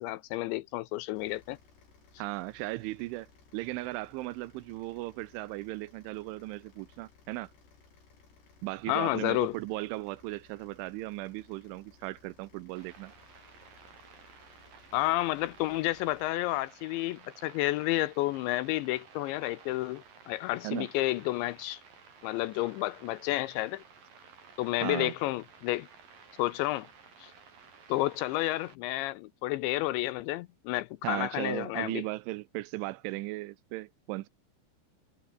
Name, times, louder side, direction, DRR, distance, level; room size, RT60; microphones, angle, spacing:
voice 1, 0.0-1.6 8.9-9.6 14.9-21.8 22.2-23.8 24.6-25.9 26.4-26.9 27.2-27.3 27.9-32.0, left 17 dB, 80° left, 2.8 m, -31 dB
sound 1, 1.2-16.3, left 5 dB, 60° left, 8.4 m, -61 dB
voice 2, 2.2-3.3 3.5-7.5 8.6-13.1 20.6-20.9 24.8-25.1 31.0-34.3, right 19 dB, 85° right, 3.1 m, -37 dB
sound 2, 12.7-28.7, right 6 dB, 45° right, 6.0 m, -55 dB
omnidirectional pair, 5.6 m